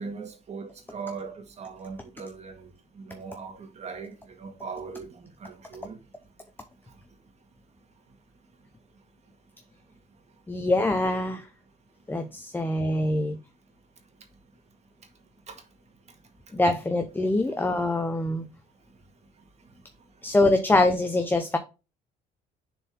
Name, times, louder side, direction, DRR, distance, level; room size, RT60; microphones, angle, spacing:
voice 1, 0.0-6.0 15.5-15.6, right 5 dB, 40° right, 1.9 m, -40 dB
voice 2, 10.5-11.5 12.1-13.4 16.5-18.5 20.2-21.6, left 2 dB, 10° left, 0.7 m, -24 dB
6.9 x 4.4 x 3.7 m
cardioid pair, 110°, 17 cm